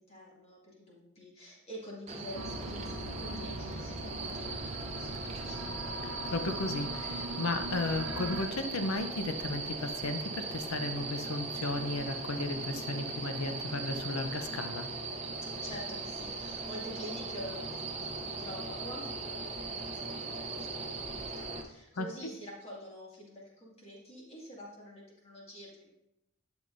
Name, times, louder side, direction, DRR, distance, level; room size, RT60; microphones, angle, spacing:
voice 1, 0.0-5.7 15.4-25.9, equal, 30° left, -4 dB, 2.2 m, -47 dB
sound 1, 2.1-21.6, right 3 dB, 30° right, 0.7 m, -39 dB
sound 2, 2.3-8.5, right 1 dB, 65° right, 0.6 m, -41 dB
voice 2, 6.0-14.9 22.0-22.3, left 2 dB, 85° left, 7 dB, 0.7 m, -35 dB
11.0 x 7.1 x 2.6 m, 0.91 s
head